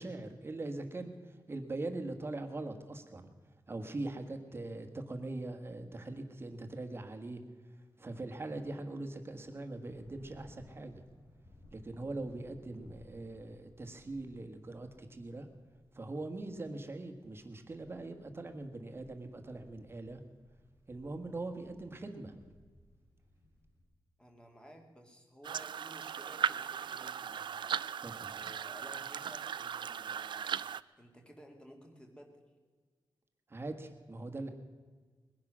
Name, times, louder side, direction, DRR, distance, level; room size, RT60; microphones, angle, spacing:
voice 1, 0.0-3.3 3.7-11.0 11.7-15.5 15.9-20.2 20.9-22.4 28.0-28.3 33.5-34.5, right 2 dB, 30° right, 5 dB, 1.5 m, -42 dB
sound 1, 7.8-23.8, left 1 dB, 85° left, 6.7 m, -61 dB
voice 2, 24.2-27.5 28.4-30.6 31.0-32.4, equal, 10° left, 2 dB, 2.2 m, -55 dB
sound 2, 25.4-30.8, right 8 dB, 70° right, 0.4 m, -37 dB
21.0 x 10.5 x 6.1 m, 1.5 s
wide cardioid pair, 165°, 8 cm